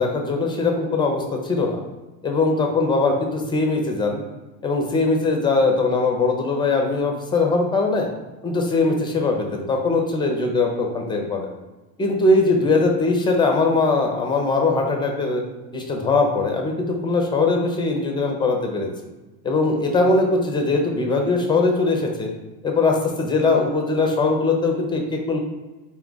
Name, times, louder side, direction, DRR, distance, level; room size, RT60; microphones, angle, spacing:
voice 1, 0.0-1.8 2.2-4.2 4.6-8.1 8.4-11.5 12.0-15.4 15.7-18.9 19.4-22.3 22.6-25.4, left 3 dB, 10° left, 2 dB, 0.4 m, -21 dB
4.3 x 2.3 x 3.8 m, 1.2 s
supercardioid pair, 105°, 49 cm